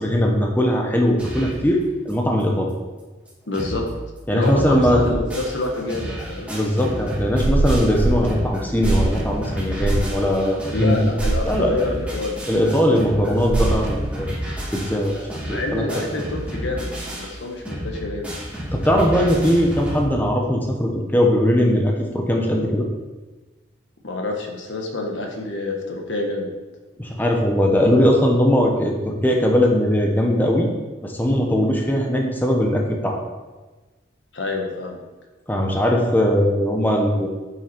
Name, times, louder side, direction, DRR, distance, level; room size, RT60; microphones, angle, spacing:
voice 1, 0.0-1.8 2.0-2.7 4.3-5.0 6.5-11.0 11.4-11.7 12.5-14.3 14.7-15.9 18.7-22.9 27.0-30.7 31.0-33.2 35.5-37.3, equal, 10° left, 1 dB, 0.9 m, -20 dB
sound 1, 1.2-1.7 2.1-2.2 2.4-2.5 3.0-3.1 3.3-3.9 4.2-20.0, equal, 5° right, 3.0 m, -31 dB
voice 2, 3.5-3.8 4.3-6.5 10.7-12.4 15.4-16.9 17.2-18.3 24.0-26.5 34.3-35.0, left 2 dB, 70° left, 1 dB, 1.4 m, -27 dB
sound 2, 7.4-8.3 8.8-9.2 9.8-10.1 11.2-11.5 13.5-13.9, right 2 dB, 35° right, 0.4 m, -21 dB
8.7 x 5.9 x 4.5 m, 1.2 s
head